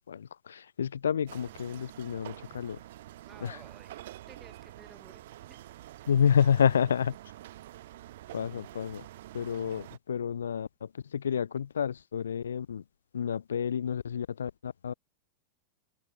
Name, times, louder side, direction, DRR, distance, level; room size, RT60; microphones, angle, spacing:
voice 1, 0.1-2.8 3.4-3.6 6.1-7.2 8.3-9.0 9.3-12.8 13.1-14.9, left 8 dB, 70° left, 0.4 m, -29 dB
sound 1, 1.3-10.0, right 14 dB, 55° right, 0.9 m, -47 dB
voice 2, 3.2-5.7, right 4 dB, 15° right, 3.3 m, -56 dB
open air
figure-of-eight pair, 90°, 0 cm